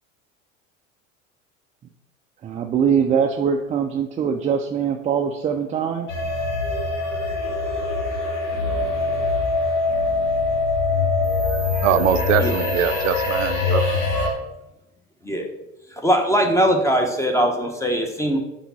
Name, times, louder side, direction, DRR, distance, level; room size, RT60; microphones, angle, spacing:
voice 1, 2.4-6.1, right 7 dB, 20° right, 3 dB, 0.4 m, -22 dB
sound 1, 6.1-14.3, left 3 dB, 75° left, 2.0 m, -23 dB
voice 2, 11.8-13.8, right 9 dB, 80° right, 11 dB, 0.5 m, -22 dB
voice 3, 16.0-18.4, equal, 5° left, 3 dB, 1.1 m, -20 dB
5.7 x 4.7 x 4.2 m, 0.91 s
hypercardioid pair, 80°, 39 cm